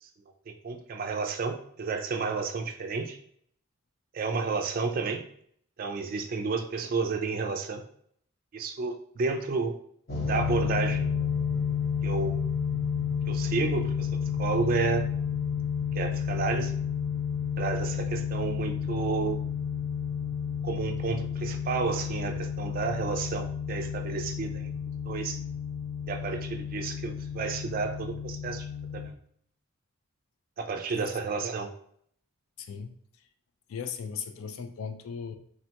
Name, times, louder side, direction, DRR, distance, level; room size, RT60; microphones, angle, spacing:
voice 1, 0.5-3.2 4.1-5.2 5.8-7.8 8.5-9.8 10.2-11.1 12.0-12.4 13.3-14.1 14.4-15.1 15.9-16.7 17.6-19.4 20.6-24.7 25.0-25.4 26.1-29.1 30.6-31.7, right 4 dB, 45° right, 5 dB, 0.3 m, -31 dB
sound 1, 10.1-29.1, left 7 dB, 45° left, 0.6 m, -31 dB
voice 2, 32.6-32.9 33.7-35.4, left 6 dB, 80° left, 8 dB, 0.4 m, -37 dB
3.5 x 2.2 x 2.8 m, 0.65 s
head